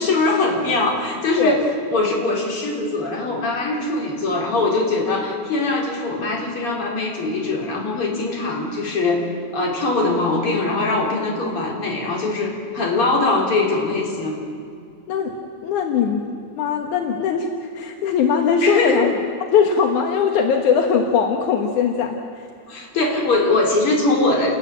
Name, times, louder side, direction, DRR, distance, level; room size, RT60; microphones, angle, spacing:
voice 1, 0.0-1.6 1.9-9.2 9.5-14.4 18.6-19.0 22.7-24.5, left 2 dB, 45° left, -2 dB, 4.9 m, -21 dB
voice 2, 15.6-19.1 19.5-22.5, left 6 dB, 80° left, 2 dB, 2.8 m, -20 dB
29.5 x 19.5 x 7.5 m, 2.3 s
omnidirectional pair, 3.5 m